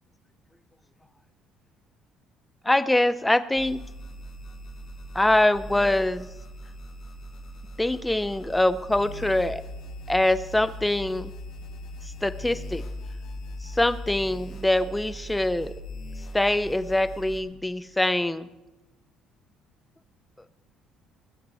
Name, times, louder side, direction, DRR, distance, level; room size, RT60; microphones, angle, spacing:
voice 1, 2.6-3.8 5.1-6.3 7.8-9.6 10.1-11.3 12.2-12.8 13.6-15.7 16.3-18.5, left 1 dB, 5° left, 13 dB, 0.6 m, -24 dB
sound 1, 3.5-17.4, equal, 60° left, 3.8 m, -40 dB
20.5 x 7.9 x 4.8 m, 1.0 s
cardioid pair, 150°, 0 cm